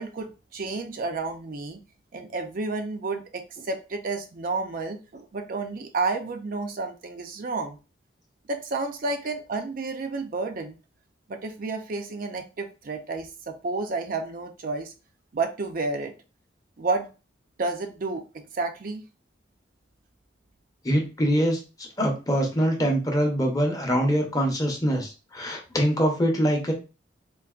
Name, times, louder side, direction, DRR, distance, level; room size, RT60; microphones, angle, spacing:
voice 1, 0.0-1.8 2.1-7.8 8.5-10.8 11.3-14.9 15.3-16.1 16.8-17.1 17.6-19.0, right 3 dB, 50° right, 5 dB, 0.5 m, -31 dB
voice 2, 20.8-26.7, equal, 20° left, 2 dB, 0.8 m, -24 dB
3.9 x 2.5 x 2.4 m, 0.31 s
head